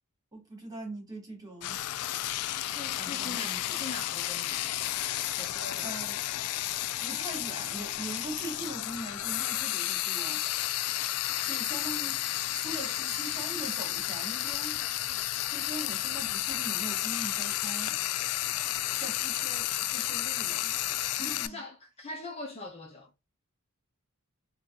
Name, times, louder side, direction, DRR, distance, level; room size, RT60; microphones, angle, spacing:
voice 1, 0.3-1.8 2.9-3.8 5.8-6.2 7.0-10.4 11.5-12.2 12.5-15.1 15.5-18.0 19.0-20.7 21.2-21.6, right 2 dB, 15° right, 1.7 m, -41 dB
Frying (food), 1.6-21.5, left 14 dB, 80° left, 0.3 m, -32 dB
voice 2, 2.6-4.7 5.4-5.9 21.4-23.1, left 2 dB, 25° left, 0.7 m, -42 dB
4.0 x 2.9 x 2.4 m
head